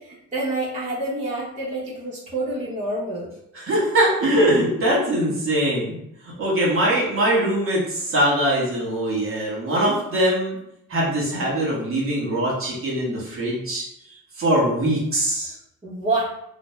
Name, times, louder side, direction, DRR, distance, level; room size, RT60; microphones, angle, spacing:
voice 1, 0.0-3.3 15.8-16.3, right 2 dB, 25° right, -8 dB, 0.9 m, -27 dB
voice 2, 3.5-6.0 6.2-10.6 10.9-13.8 14.4-15.5, right 1 dB, 45° right, -4 dB, 1.2 m, -22 dB
2.6 x 2.1 x 3.2 m, 0.77 s
cardioid pair, 90°, 30 cm